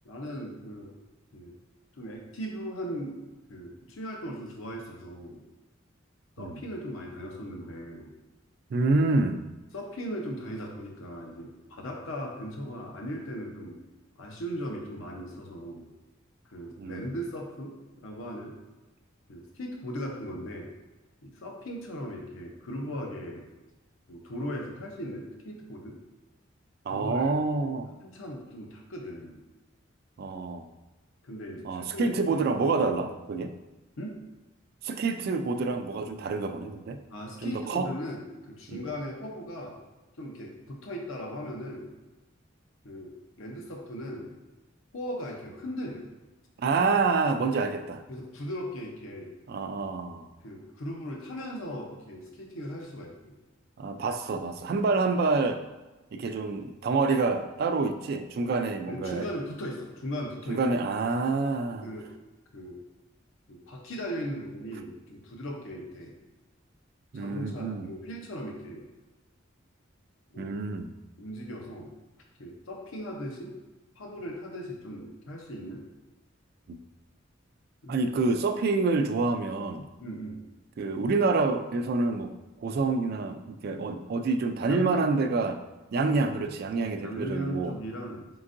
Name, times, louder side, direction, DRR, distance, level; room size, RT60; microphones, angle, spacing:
voice 1, 0.0-0.9 1.3-1.5 1.9-3.2 3.5-5.4 6.4-8.1 9.7-13.8 14.2-15.9 16.4-18.6 19.3-20.7 21.2-23.5 24.1-26.0 26.9-27.7 28.0-29.4 31.2-32.4 32.7-32.9 34.0-34.2 37.1-39.8 40.2-41.9 42.8-44.4 44.9-46.1 48.1-49.4 50.4-53.3 58.9-60.6 61.8-62.1 62.5-62.8 63.5-66.1 67.1-68.9 70.3-70.6 71.2-71.9 72.4-73.6 74.0-75.8 77.8-78.0 80.0-80.4 84.7-85.1 87.0-88.3, equal, 80° left, 1 dB, 0.7 m, -38 dB
voice 2, 8.7-9.4 16.8-17.1 26.9-27.9 30.2-30.7 31.6-33.5 34.8-37.0 37.4-37.9 38.7-38.9 46.6-48.0 49.5-50.3 53.8-55.6 56.1-59.3 60.5-61.9 67.1-67.9 70.4-70.9 76.7-76.8 77.9-79.9 80.8-82.3 82.6-85.6 85.9-87.7, right 3 dB, 50° right, 7 dB, 0.3 m, -27 dB
4.4 x 3.8 x 2.5 m, 1.1 s
head